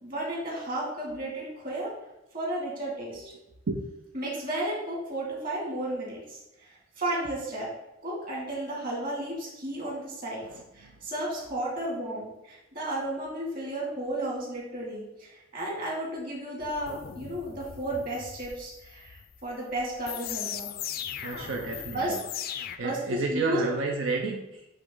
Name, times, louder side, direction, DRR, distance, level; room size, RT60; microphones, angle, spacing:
voice 1, 0.0-1.9 2.3-3.3 4.1-7.7 8.0-10.4 10.7-20.7 21.9-22.1 22.4-22.6 22.8-23.6, right 1 dB, 45° right, -4 dB, 2.3 m, -33 dB
voice 2, 10.4-11.1 21.2-22.2 22.5-24.7, right 4 dB, 90° right, 1 dB, 0.7 m, -32 dB
sound 1, 16.6-22.8, left 10 dB, 50° left, 0.3 m, -39 dB
8.2 x 3.7 x 3.8 m, 0.93 s
head